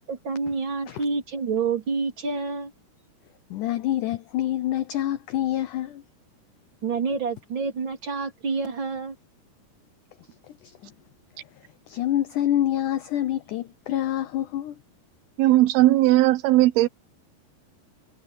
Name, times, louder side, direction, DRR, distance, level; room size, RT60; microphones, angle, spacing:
voice 1, 0.1-2.7 6.8-9.2, right 4 dB, 30° right, 3.7 m, -28 dB
voice 2, 3.5-6.0 10.5-10.9 11.9-14.8, left 12 dB, 85° left, 1.8 m, -27 dB
voice 3, 15.4-16.9, right 16 dB, 75° right, 2.8 m, -18 dB
omnidirectional pair, 4.6 m